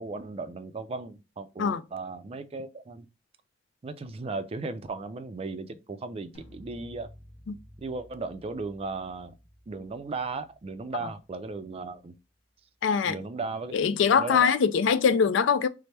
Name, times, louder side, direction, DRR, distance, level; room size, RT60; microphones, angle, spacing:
voice 1, 0.0-3.1 3.8-7.1 7.8-9.3 9.7-12.1 13.0-13.7 14.1-14.5, right 3 dB, 35° right, 0.4 m, -36 dB
sound 1, 6.3-12.3, equal, 35° left, 1.2 m, -54 dB
voice 2, 12.8-13.2 13.7-15.7, left 6 dB, 80° left, 0.4 m, -23 dB
4.2 x 2.0 x 3.2 m
head